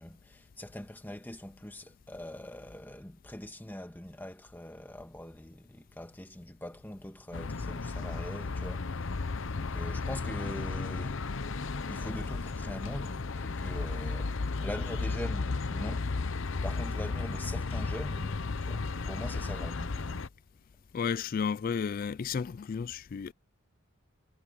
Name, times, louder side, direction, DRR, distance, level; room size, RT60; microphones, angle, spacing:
voice 1, 0.0-9.3 9.5-11.2 11.8-14.3 14.6-20.2, left 1 dB, 10° left, 1.7 m, -43 dB
sound 1, 7.3-20.3, left 3 dB, 65° left, 0.8 m, -34 dB
voice 2, 20.9-23.3, left 6 dB, 45° left, 0.3 m, -32 dB
head